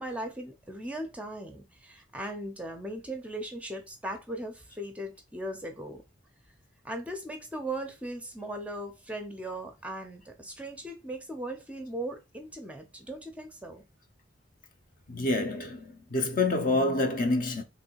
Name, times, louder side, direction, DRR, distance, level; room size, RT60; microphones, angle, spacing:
voice 1, 0.0-6.0 6.8-13.8, right 1 dB, 5° right, 0.6 m, -38 dB
voice 2, 15.1-17.6, left 2 dB, 40° left, 0.6 m, -27 dB
3.3 x 3.1 x 4.5 m
head